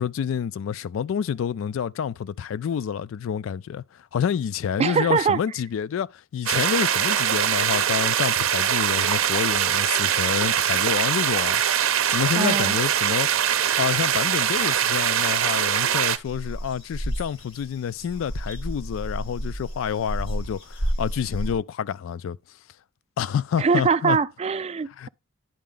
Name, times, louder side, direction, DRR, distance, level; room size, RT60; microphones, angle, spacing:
voice 1, 0.0-13.3 13.8-22.4 23.2-24.2 25.0-25.1, left 8 dB, 70° left, 0.3 m, -28 dB
voice 2, 4.8-5.4 12.4-12.8 23.6-25.1, right 5 dB, 30° right, 0.3 m, -22 dB
sound 1, 6.5-16.2, right 9 dB, 85° right, 0.6 m, -22 dB
sound 2, 16.3-21.5, equal, 85° left, 1.7 m, -31 dB
10.5 x 4.2 x 3.7 m
head